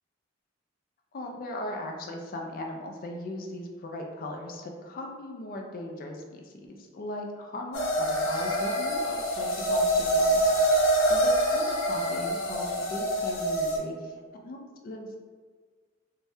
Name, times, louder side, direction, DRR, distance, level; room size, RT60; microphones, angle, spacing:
voice 1, 1.1-10.5 11.1-14.1 14.4-14.6 14.8-15.2, left 1 dB, 45° left, 2 dB, 0.4 m, -38 dB
sound 1, 7.7-13.8, right 1 dB, 85° left, 0.6 m, -25 dB
2.7 x 2.1 x 3.3 m, 1.6 s
head